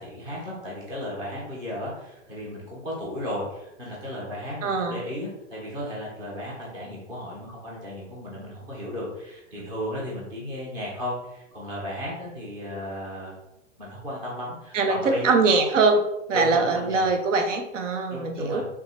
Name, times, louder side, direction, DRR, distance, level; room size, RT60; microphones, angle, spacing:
voice 1, 0.0-13.3 13.8-15.3 16.3-17.0 18.1-18.6, left 1 dB, 10° right, -5 dB, 0.8 m, -34 dB
voice 2, 4.6-5.0 14.7-16.0 16.3-18.6, right 3 dB, 70° right, 6 dB, 0.8 m, -22 dB
3.5 x 2.9 x 4.3 m, 0.88 s
hypercardioid pair, 160°, 38 cm